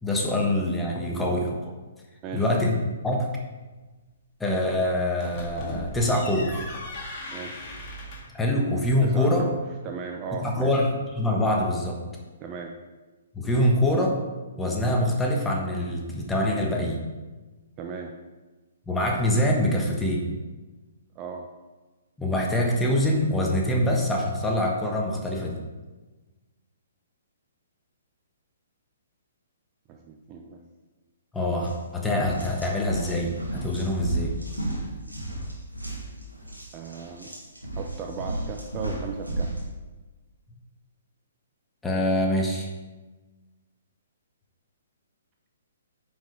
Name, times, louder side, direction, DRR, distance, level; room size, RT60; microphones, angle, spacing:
voice 1, 0.0-1.7 2.3-3.3 4.4-6.5 8.3-9.5 10.4-12.0 13.3-14.2 14.6-17.0 18.9-20.3 22.2-25.6 31.3-34.3 41.8-42.7, left 1 dB, 5° left, -1 dB, 1.3 m, -24 dB
sound 1, 5.1-8.4, left 1 dB, 25° left, 1.9 m, -38 dB
voice 2, 7.3-7.7 9.0-9.6 9.8-10.7 12.4-12.7 17.8-18.1 21.2-21.5 29.9-30.6 36.7-37.3 37.8-39.5, right 5 dB, 25° right, 3 dB, 0.6 m, -36 dB
sound 2, 31.5-31.7 32.1-39.6, right 2 dB, 90° right, 2.3 m, -33 dB
9.2 x 5.4 x 5.0 m, 1.2 s
figure-of-eight pair, 125°, 0 cm